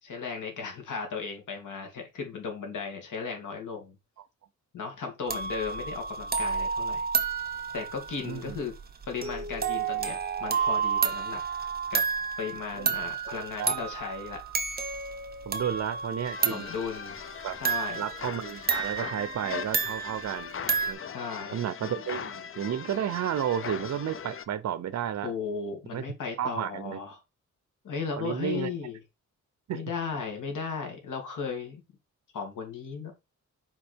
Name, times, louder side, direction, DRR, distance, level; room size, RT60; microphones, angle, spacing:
voice 1, 0.0-4.0 4.7-7.0 7.7-8.8 9.1-11.4 11.9-12.0 12.4-14.4 16.5-17.2 17.6-18.0 21.1-21.6 25.2-27.2 27.8-29.0 29.7-31.8 32.3-33.1, left 5 dB, 80° left, 2.8 m, -36 dB
sound 1, 5.3-20.9, right 6 dB, 30° right, 1.2 m, -31 dB
voice 2, 8.2-8.6 12.7-13.3 13.6-13.8 15.5-16.6 17.4-17.6 18.0-21.0 21.5-25.3 25.9-26.0 26.4-27.0 28.2-28.7 29.7-29.8, right 9 dB, 60° right, 0.8 m, -32 dB
sound 2, 16.2-24.5, left 7 dB, 45° left, 0.7 m, -39 dB
5.3 x 5.1 x 5.2 m
wide cardioid pair, 145°, 31 cm